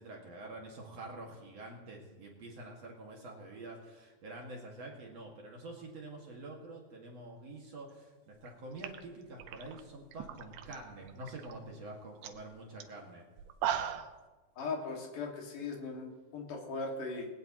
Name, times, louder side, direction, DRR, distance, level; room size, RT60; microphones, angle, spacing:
voice 1, 0.0-13.3, right 2 dB, 45° right, -1 dB, 2.4 m, -47 dB
sound 1, 8.4-8.5 8.8-10.8 11.1-11.5 11.9-12.0 12.2-12.4 12.8-12.9 13.4-14.2, right 10 dB, 80° right, 2.7 m, -38 dB
voice 2, 14.6-17.3, left 3 dB, 55° left, 0 dB, 3.3 m, -39 dB
19.5 x 18.0 x 3.0 m, 1.2 s
omnidirectional pair, 4.9 m